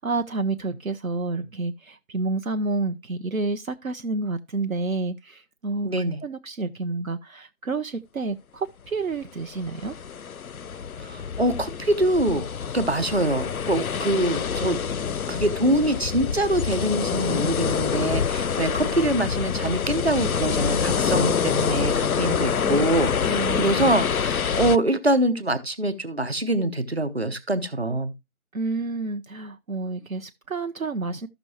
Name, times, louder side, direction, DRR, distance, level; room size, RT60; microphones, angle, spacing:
voice 1, 0.0-10.0 22.6-22.8 23.2-23.7 28.5-31.3, right 3 dB, 70° right, 0.7 m, -29 dB
voice 2, 5.8-6.2 11.0-12.5 12.7-14.8 15.3-28.1, right 1 dB, 45° right, 1.0 m, -24 dB
sound 1, 9.4-24.8, left 7 dB, 80° left, 0.5 m, -26 dB
14.0 x 6.1 x 2.8 m
figure-of-eight pair, 170°, 42 cm